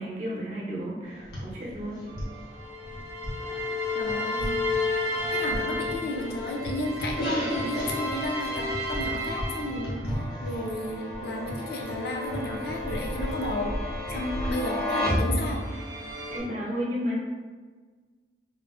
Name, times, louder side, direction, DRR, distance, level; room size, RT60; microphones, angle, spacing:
voice 1, 0.0-2.0 14.1-14.5 16.3-17.2, equal, 40° right, -5 dB, 0.7 m, -32 dB
sound 1, 1.0-16.4, equal, 80° left, 1.0 m, -37 dB
sound 2, 2.1-10.3 10.9-14.7 15.1-16.4, left 2 dB, 75° right, 0.7 m, -33 dB
voice 2, 3.9-4.6 5.3-13.8 14.1-15.7, left 1 dB, 60° left, 0 dB, 0.4 m, -33 dB
sound 3, 10.1-16.0, left 1 dB, 5° left, 0.5 m, -33 dB
3.7 x 2.0 x 2.3 m, 1.4 s
head